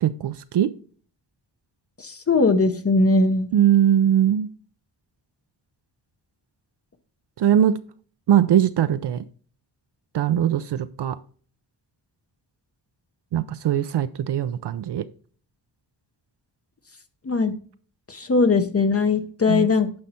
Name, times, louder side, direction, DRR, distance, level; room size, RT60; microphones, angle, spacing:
voice 1, 0.0-0.7 3.5-4.5 7.4-7.8 8.3-9.2 10.1-11.2 13.3-15.1 19.5-19.7, right 10 dB, 70° right, 0.5 m, -21 dB
voice 2, 2.0-3.5 17.2-17.5 18.1-20.0, left 3 dB, 35° left, 0.7 m, -20 dB
9.7 x 5.6 x 4.2 m
wide cardioid pair, 180°, 43 cm